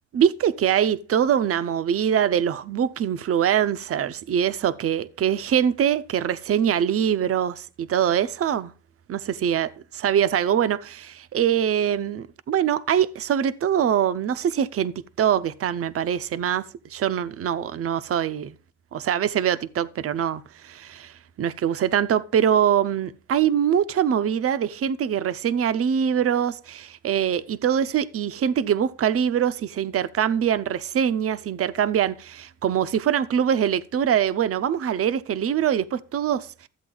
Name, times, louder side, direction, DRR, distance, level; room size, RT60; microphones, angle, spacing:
voice 1, 0.1-8.7 9.1-16.6 16.9-18.6 18.9-36.7, right 9 dB, 50° right, 0.7 m, -23 dB
13.0 x 8.0 x 3.9 m
cardioid pair, 90°, 30 cm